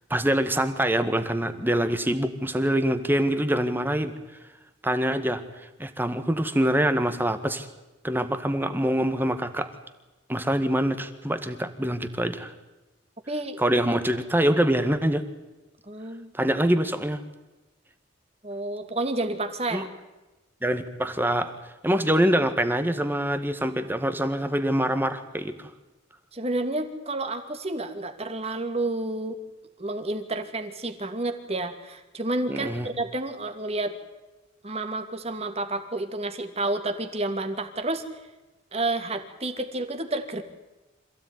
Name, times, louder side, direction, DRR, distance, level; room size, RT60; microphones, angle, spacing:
voice 1, 0.1-4.1 4.8-5.4 5.8-7.7 8.0-9.7 10.3-12.5 13.6-15.2 16.3-17.2 19.7-19.9 20.6-21.5 21.8-25.7 32.5-32.9, right 1 dB, 10° right, 9 dB, 1.8 m, -25 dB
voice 2, 13.3-13.6 13.9-14.0 15.9-16.3 18.4-19.9 26.3-29.4 29.8-33.9 34.6-38.0 38.7-40.4, right 2 dB, 30° right, 7 dB, 2.6 m, -30 dB
27.0 x 16.5 x 9.6 m, 1.1 s
head